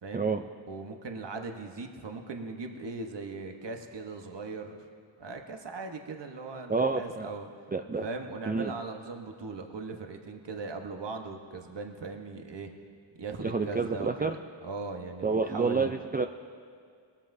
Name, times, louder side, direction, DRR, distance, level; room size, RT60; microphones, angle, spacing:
voice 1, 0.7-4.9 5.2-7.5 8.0-12.7 13.2-15.9, right 4 dB, 55° right, 4 dB, 1.2 m, -39 dB
voice 2, 6.7-7.3 7.7-8.0 8.5-8.7 13.4-14.4 15.2-16.3, right 4 dB, 20° right, 5 dB, 0.4 m, -28 dB
19.5 x 13.0 x 2.7 m, 2.2 s
cardioid pair, 50°, 49 cm